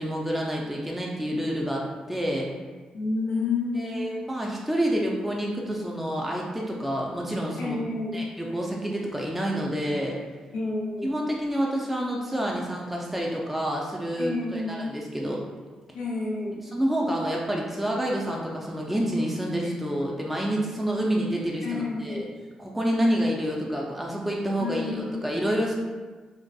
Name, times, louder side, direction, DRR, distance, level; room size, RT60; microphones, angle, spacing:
voice 1, 0.0-2.5 3.7-7.8 8.1-10.1 11.0-15.4 16.7-22.3 22.6-25.7, equal, 5° right, -2 dB, 0.4 m, -28 dB
voice 2, 2.9-4.3 7.6-8.2 10.5-11.2 14.2-14.7 15.9-16.6 21.6-22.3 24.6-25.4, left 3 dB, 85° left, -5 dB, 0.6 m, -30 dB
2.6 x 2.4 x 2.3 m, 1.4 s
supercardioid pair, 50°, 2 cm